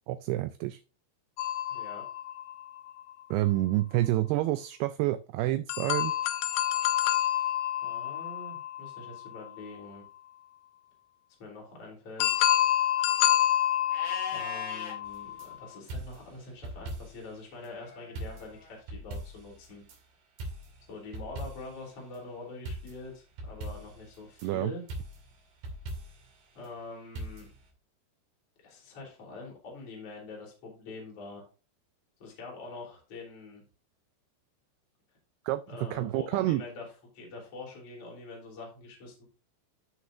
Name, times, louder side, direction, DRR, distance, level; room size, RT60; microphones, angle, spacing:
voice 1, 0.1-0.8 3.3-6.1 24.4-24.7 35.5-36.6, right 16 dB, 80° right, 10 dB, 2.4 m, -28 dB
sound 1, 1.4-3.1 5.7-9.6 12.2-15.7, left 12 dB, 85° left, 2.9 m, -28 dB
voice 2, 1.7-2.0 7.8-10.0 11.4-12.4 14.3-19.8 20.9-24.8 26.5-27.5 28.6-31.4 32.2-33.6 35.7-36.9 37.1-39.2, left 3 dB, 35° left, -2 dB, 3.9 m, -44 dB
Livestock farm animals working animals, 13.9-14.9 17.8-18.8, left 4 dB, 55° left, 3.6 m, -41 dB
sound 2, 15.1-15.5 15.9-17.3 17.6-17.7 18.2-20.0 20.4-21.8 22.7-24.5 24.9-26.3 27.2-27.7, right 1 dB, 60° right, 3.9 m, -41 dB
14.0 x 6.3 x 2.5 m, 0.34 s
omnidirectional pair, 4.9 m